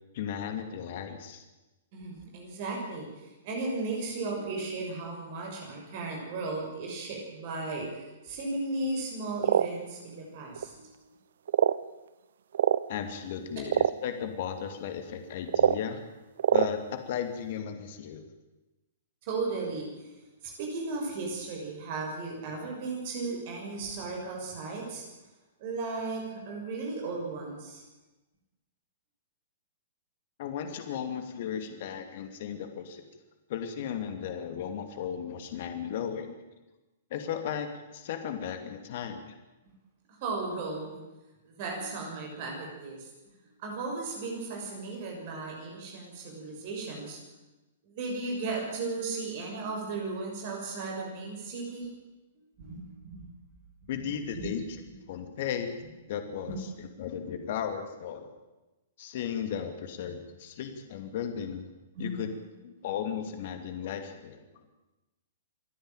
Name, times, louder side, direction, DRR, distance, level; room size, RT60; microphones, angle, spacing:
voice 1, 0.1-1.4 12.9-13.7 14.0-16.0 16.5-18.3 30.4-33.0 33.5-36.4 37.1-37.7 37.9-39.4 53.9-54.6 55.1-55.8 56.1-58.3 59.0-61.7 62.0-62.3 62.6-64.4, left 8 dB, 55° left, 7 dB, 2.6 m, -35 dB
voice 2, 1.9-11.0 19.3-20.1 20.4-25.0 25.6-27.8 40.1-41.0 41.4-43.1 43.6-47.2 47.8-51.9 52.6-53.3 53.8-54.1 54.3-54.5 56.5-56.6 61.9-62.2, right 3 dB, 50° right, 0 dB, 6.5 m, -35 dB
sound 1, 9.4-9.7 10.6-10.7 11.5-11.8 12.5-12.8 13.7-13.9 15.5-15.8 16.4-16.7, right 9 dB, 70° right, 0.6 m, -23 dB
27.0 x 10.5 x 9.1 m, 1.1 s
hypercardioid pair, 120°, 0 cm